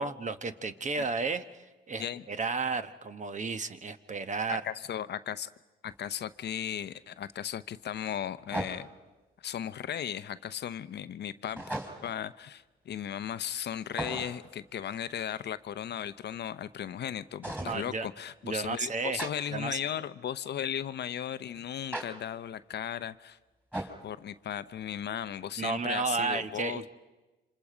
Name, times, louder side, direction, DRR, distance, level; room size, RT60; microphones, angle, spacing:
voice 1, 0.0-4.6 17.6-18.1 18.4-19.2 19.5-19.8 25.6-26.9, right 4 dB, 35° right, 10 dB, 1.1 m, -33 dB
voice 2, 4.5-5.5 5.8-8.9 9.4-11.6 12.0-23.4 23.7-26.8, left 9 dB, 55° left, 13 dB, 0.7 m, -36 dB
sound 1, 5.9-6.0 8.5-9.1 11.6-12.2 13.9-14.5 17.4-17.8 19.2-19.3 21.9-22.1 23.7-24.0, right 1 dB, 10° right, 3.7 m, -36 dB
28.0 x 26.0 x 5.0 m, 1.2 s
cardioid pair, 85°, 20 cm